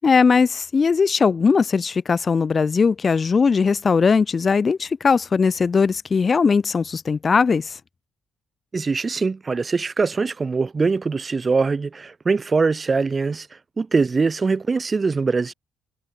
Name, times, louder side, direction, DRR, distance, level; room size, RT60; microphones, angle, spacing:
voice 1, 0.0-7.7, left 5 dB, 40° left, 6.5 m, -19 dB
voice 2, 8.7-13.5 13.8-15.5, right 4 dB, 30° right, 7.4 m, -22 dB
cardioid pair, 90°, 0 cm